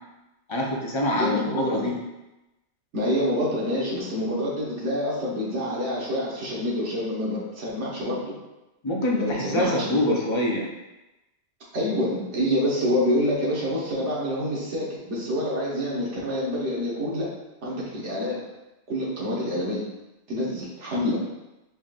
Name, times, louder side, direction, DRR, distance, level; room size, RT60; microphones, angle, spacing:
voice 1, 0.5-1.9 8.8-10.7, left 1 dB, 30° left, -2 dB, 0.6 m, -25 dB
voice 2, 1.2-1.9 2.9-8.3 9.2-10.2 11.7-17.3 17.6-18.4 18.9-19.9 20.3-21.2, left 1 dB, 75° right, -6 dB, 1.5 m, -27 dB
4.3 x 3.8 x 2.5 m, 1.0 s
omnidirectional pair, 1.2 m